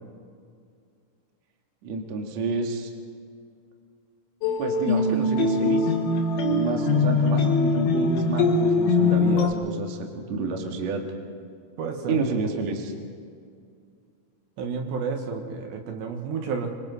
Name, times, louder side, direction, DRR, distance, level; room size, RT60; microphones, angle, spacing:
voice 1, 1.8-2.9 4.6-5.9 6.5-11.0 12.1-12.9, right 4 dB, 50° right, 2 dB, 2.4 m, -29 dB
sound 1, 4.4-9.5, left 3 dB, 80° left, 4.3 m, -22 dB
voice 2, 11.8-12.2 14.6-16.7, right 5 dB, 70° right, 3 dB, 3.5 m, -31 dB
26.0 x 25.5 x 4.1 m, 2.2 s
omnidirectional pair, 5.4 m